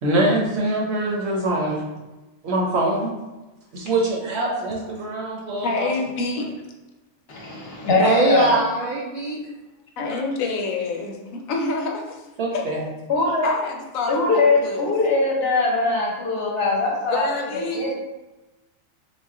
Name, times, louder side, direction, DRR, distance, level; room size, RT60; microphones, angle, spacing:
voice 1, 0.0-1.8 2.4-3.1 3.7-5.9 12.4-12.9, right 1 dB, 60° right, -2 dB, 0.9 m, -24 dB
voice 2, 5.6-6.5 10.0-12.2 12.5-12.8 13.4-14.9 17.1-17.9, left 3 dB, 80° left, 2 dB, 1.0 m, -27 dB
voice 3, 7.3-8.5 10.1-10.2 13.1-13.5 14.1-17.9, left 3 dB, 50° left, -3 dB, 0.9 m, -22 dB
voice 4, 8.0-9.5, right 2 dB, 90° right, -3 dB, 0.4 m, -21 dB
3.4 x 2.3 x 3.6 m, 1.1 s
omnidirectional pair, 1.4 m